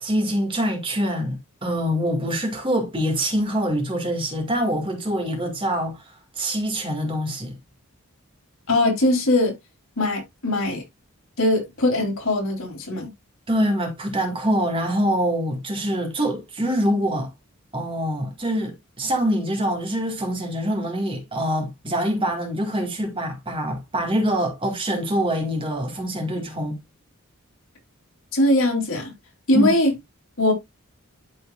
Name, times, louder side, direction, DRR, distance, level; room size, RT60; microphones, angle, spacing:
voice 1, 0.0-7.6 13.5-17.3 17.7-26.8 29.5-29.7, equal, 25° right, 1.8 m, -25 dB
voice 2, 8.7-9.5 10.0-10.8 11.4-13.1 28.3-29.1 29.5-29.9 30.4-30.5, left 1 dB, 75° left, 3.1 m, -21 dB
12.0 x 4.4 x 2.3 m
head